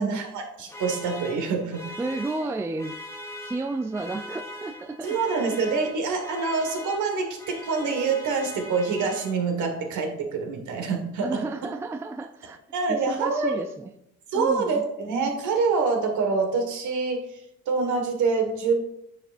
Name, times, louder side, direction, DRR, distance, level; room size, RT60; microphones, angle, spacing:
voice 1, 0.0-1.9 5.0-11.4 12.7-13.6 14.3-17.2 17.7-18.7, right 4 dB, 60° right, 3 dB, 1.7 m, -26 dB
sound 1, 0.7-9.7, left 1 dB, 10° left, 1.3 m, -41 dB
voice 2, 2.0-3.0 3.4-5.5 11.2-12.6 12.9-13.9 14.3-14.8, right 3 dB, 10° right, 8 dB, 0.3 m, -32 dB
9.0 x 4.9 x 2.6 m, 0.79 s
hypercardioid pair, 55°, 34 cm